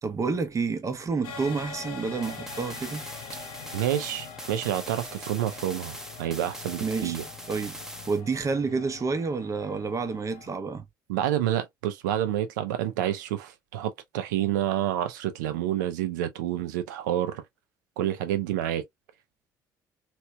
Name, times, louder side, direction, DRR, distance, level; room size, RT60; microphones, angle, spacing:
voice 1, 0.0-3.0 6.8-7.2 7.5-7.8 8.1-10.8, right 4 dB, 30° right, 0.9 m, -29 dB
sound 1, 1.2-10.5, left 6 dB, 65° left, 0.7 m, -43 dB
sound 2, 2.2-8.2, right 1 dB, 5° right, 0.9 m, -42 dB
voice 2, 3.7-7.2 11.1-17.4 18.0-18.8, right 12 dB, 75° right, 0.6 m, -28 dB
3.1 x 3.0 x 2.2 m
figure-of-eight pair, 55°, 10 cm